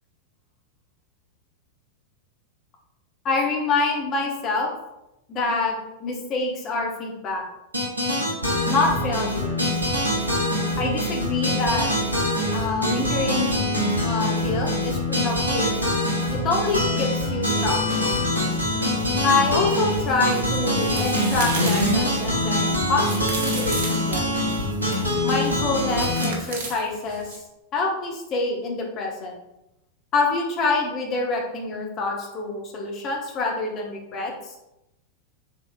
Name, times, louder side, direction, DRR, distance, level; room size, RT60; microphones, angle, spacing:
voice 1, 3.2-4.7 5.3-7.4 8.7-9.6 10.8-11.9 12.5-13.5 14.0-15.7 16.3-17.8 19.2-24.3 25.2-27.3 27.7-29.4 30.1-34.6, left 3 dB, 30° left, 0 dB, 0.9 m, -26 dB
sound 1, 7.7-26.3, left 1 dB, 85° right, 0.8 m, -24 dB
sound 2, 20.0-25.1 26.0-27.4, right 3 dB, 55° right, 0.8 m, -34 dB
3.9 x 3.5 x 2.3 m, 0.89 s
figure-of-eight pair, 90°, 0 cm